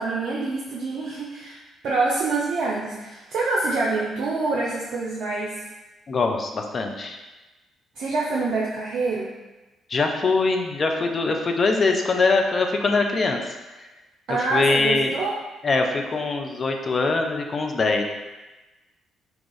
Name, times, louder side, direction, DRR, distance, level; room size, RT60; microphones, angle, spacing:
voice 1, 0.0-5.7 8.0-9.3 14.3-15.3, right 3 dB, 55° right, -4 dB, 0.4 m, -26 dB
voice 2, 6.1-7.2 9.9-13.4 14.3-15.1 15.6-18.0, left 3 dB, 40° left, 3 dB, 0.4 m, -22 dB
2.9 x 2.3 x 3.9 m, 1.1 s
figure-of-eight pair, 45°, 0 cm